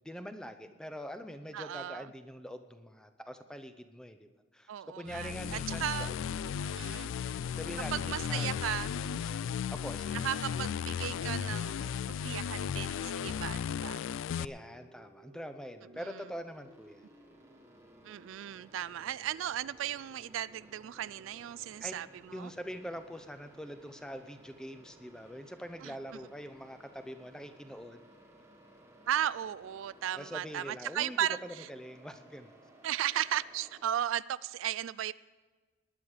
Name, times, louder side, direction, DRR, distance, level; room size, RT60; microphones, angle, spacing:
voice 1, 0.0-4.3 4.5-5.9 7.6-8.5 9.7-10.2 14.4-17.1 21.8-22.0 22.3-28.0 30.1-32.5, equal, 5° left, 8 dB, 0.7 m, -44 dB
voice 2, 1.5-2.1 4.7-6.1 6.7-7.1 7.9-8.9 10.1-14.0 15.9-16.3 18.0-22.5 25.8-26.2 29.1-31.7 32.8-35.1, right 11 dB, 70° right, 19 dB, 0.3 m, -36 dB
sound 1, 5.1-14.5, left 7 dB, 70° left, 0.3 m, -35 dB
sound 2, 14.3-33.8, right 1 dB, 15° right, 1.6 m, -58 dB
19.0 x 9.7 x 5.0 m, 1.4 s
head